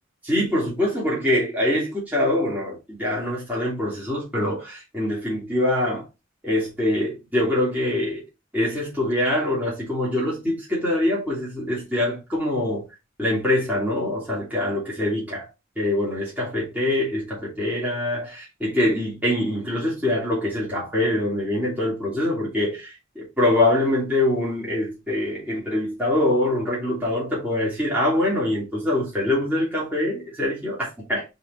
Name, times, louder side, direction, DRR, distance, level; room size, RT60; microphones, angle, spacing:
voice 1, 0.2-6.1 6.4-8.2 8.5-12.9 13.2-15.5 15.8-31.2, left 1 dB, 10° right, 3.0 m, -24 dB
5.6 x 4.0 x 4.3 m
head